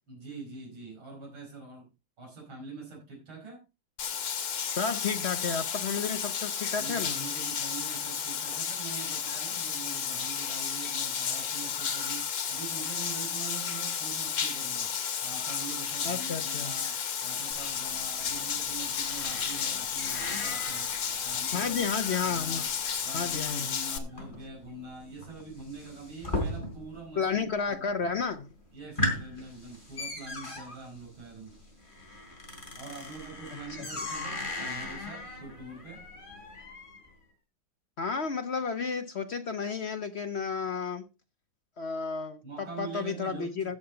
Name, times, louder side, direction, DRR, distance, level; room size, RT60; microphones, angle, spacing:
voice 1, 0.1-1.9 2.2-3.6 6.8-21.8 22.2-22.7 23.0-27.4 28.7-31.6 32.8-36.1 42.4-43.8, right 4 dB, 70° right, 5.7 m, -44 dB
Bathtub (filling or washing), 4.0-24.0, left 7 dB, 90° left, 2.4 m, -32 dB
voice 2, 4.7-7.2 16.0-16.7 21.5-22.6 23.1-23.7 27.2-28.5 33.8-33.9 38.0-41.1 41.8-43.8, left 5 dB, 65° left, 0.6 m, -32 dB
sound 1, 17.5-27.1 27.3-27.9 28.3-28.4 28.7-37.1, left 1 dB, 20° left, 3.9 m, -38 dB
15.5 x 6.9 x 3.8 m
omnidirectional pair, 2.3 m